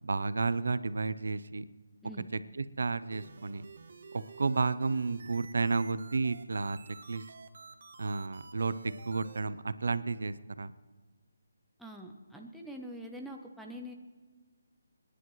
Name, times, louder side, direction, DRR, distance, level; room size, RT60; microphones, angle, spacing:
voice 1, 0.0-1.6 2.6-3.6 4.1-6.8 7.1-7.3 8.0-8.7 9.1-10.7, right 4 dB, 75° right, 15 dB, 0.6 m, -32 dB
sound 1, 3.1-9.4, right 4 dB, 50° right, 1.2 m, -51 dB
voice 2, 11.8-13.9, equal, ahead, 0 dB, 0.7 m, -44 dB
28.0 x 10.0 x 3.1 m, 1.4 s
hypercardioid pair, 170°, 0 cm